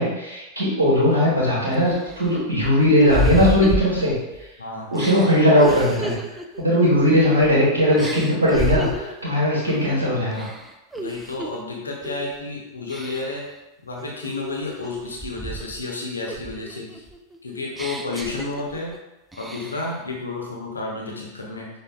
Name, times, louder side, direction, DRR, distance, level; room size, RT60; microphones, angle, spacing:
voice 1, 0.0-4.2 4.9-6.2 6.6-10.5, left 1 dB, 75° right, -6 dB, 1.2 m, -19 dB
sound 1, 1.1-1.2 1.7-4.5 4.9-7.6 8.0-9.2 9.7-10.0 10.3-11.6 12.0-12.4 12.9-13.5 14.0-15.9 16.3-19.0 19.3-20.0, right 2 dB, 5° right, 0.4 m, -31 dB
voice 2, 4.6-4.9 11.0-13.4 13.8-17.0 17.4-18.9 19.3-21.7, left 3 dB, 75° left, -2 dB, 0.8 m, -31 dB
6.1 x 2.6 x 2.4 m, 1.0 s
figure-of-eight pair, 90°, 0 cm